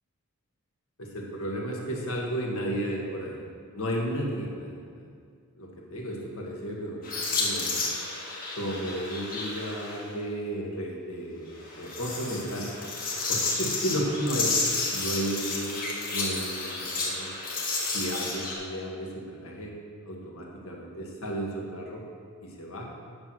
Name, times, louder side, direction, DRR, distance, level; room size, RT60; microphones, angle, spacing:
voice 1, 1.0-3.4 3.7-5.1 5.6-7.7 8.6-12.7 13.3-14.6 14.9-17.3 17.9-19.7 20.0-22.1 22.4-22.9, equal, 70° left, -1 dB, 1.6 m, -33 dB
sound 1, 7.0-10.0 11.6-18.5, left 3 dB, 40° left, 1.6 m, -31 dB
8.7 x 6.0 x 6.2 m, 2.1 s
head